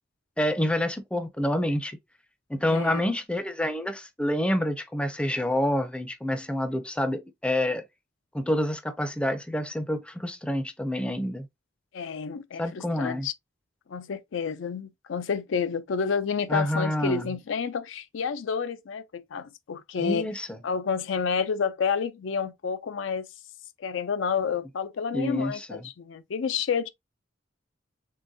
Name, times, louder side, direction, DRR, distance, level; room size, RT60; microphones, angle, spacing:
voice 1, 0.4-2.0 2.5-7.8 8.3-11.5 12.6-13.3 16.5-17.3 20.0-20.6 25.1-25.9, left 1 dB, 5° left, 0.4 m, -28 dB
voice 2, 2.6-3.1 11.9-13.3 13.9-20.3 20.6-23.3 23.8-26.9, left 6 dB, 85° left, 0.4 m, -29 dB
3.8 x 3.4 x 2.6 m
head